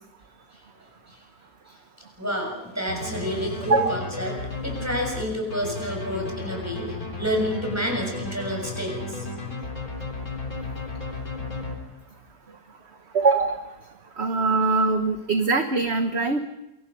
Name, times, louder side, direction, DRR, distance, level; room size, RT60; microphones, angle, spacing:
voice 1, 2.2-4.3 4.6-9.3 14.3-14.4, equal, 10° right, 1 dB, 6.5 m, -29 dB
sound 1, 2.9-12.2, left 3 dB, 70° left, 4.1 m, -34 dB
voice 2, 13.1-13.6 14.2-16.4, right 3 dB, 45° right, 6 dB, 1.4 m, -22 dB
28.0 x 24.5 x 5.5 m, 0.90 s
omnidirectional pair, 1.6 m